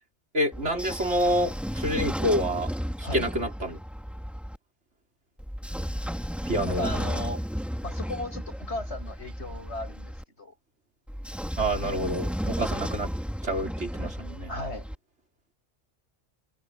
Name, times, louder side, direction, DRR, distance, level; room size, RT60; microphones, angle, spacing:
voice 1, 0.3-2.7 3.1-3.8 6.5-6.9 11.6-13.1 13.4-14.5, equal, 70° right, 5.2 m, -27 dB
Train / Sliding door, 0.5-4.6 5.4-10.2 11.1-15.0, equal, ahead, 2.0 m, -33 dB
voice 2, 6.6-7.4 7.8-10.5 14.5-14.9, left 2 dB, 65° left, 7.5 m, -36 dB
omnidirectional pair, 1.2 m